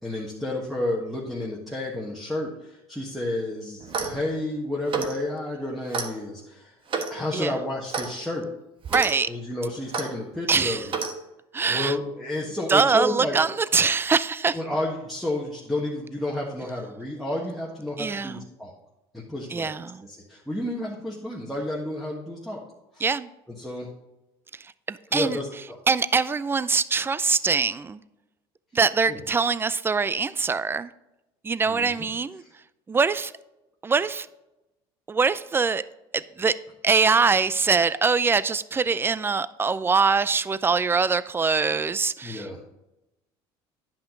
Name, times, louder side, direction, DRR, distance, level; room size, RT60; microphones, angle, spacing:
voice 1, 0.0-6.8 7.1-8.5 9.3-10.8 11.6-13.4 14.5-18.7 19.1-19.7 20.0-22.6 22.9-23.0 23.6-23.9 25.1-25.8 29.1-29.2 31.7-32.1 42.2-42.6, left 1 dB, ahead, -4 dB, 1.6 m, -31 dB
Clock, 3.8-4.2 4.9-5.2 5.9-6.1 6.9-7.2 7.9-8.1 8.8-9.1 9.9-10.1 10.9-11.1, right 5 dB, 45° right, 1.3 m, -29 dB
voice 2, 8.9-9.3 10.5-10.9 11.5-12.0 12.7-14.6 18.0-18.4 19.5-20.1 23.0-23.3 24.5-25.4 25.9-28.0 28.7-30.9 31.4-32.4 32.9-33.3 33.8-34.3 35.1-35.8 36.1-36.6 36.8-42.6, right 5 dB, 20° right, 17 dB, 0.4 m, -23 dB
10.0 x 5.7 x 3.8 m, 0.94 s
supercardioid pair, 85°, 13 cm